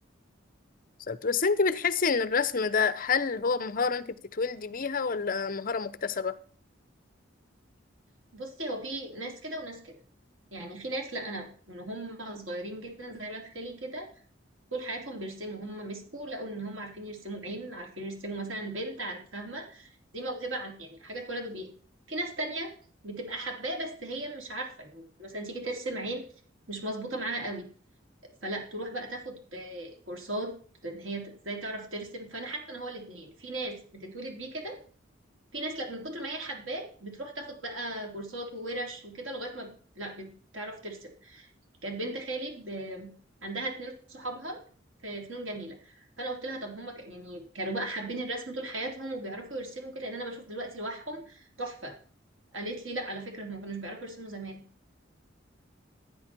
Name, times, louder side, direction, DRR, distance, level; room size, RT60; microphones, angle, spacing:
voice 1, 1.1-6.4, left 5 dB, 45° left, 0.7 m, -28 dB
voice 2, 8.3-9.9 10.5-14.1 14.7-21.7 22.1-22.7 23.0-26.2 26.7-27.7 28.4-30.6 30.8-34.8 35.5-39.7 40.0-41.5 41.8-43.1 43.4-44.6 45.0-52.0 52.5-54.6, right 1 dB, 90° right, 3.9 m, -37 dB
15.0 x 9.7 x 4.5 m
head